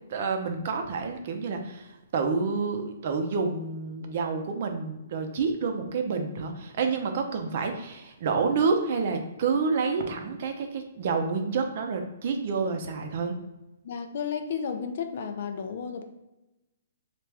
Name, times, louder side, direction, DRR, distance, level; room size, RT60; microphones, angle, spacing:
voice 1, 0.1-13.3, right 4 dB, 55° right, 5 dB, 0.5 m, -28 dB
voice 2, 13.8-16.0, left 6 dB, 60° left, 7 dB, 0.4 m, -32 dB
3.3 x 2.4 x 3.2 m, 0.97 s
hypercardioid pair, 130°, 0 cm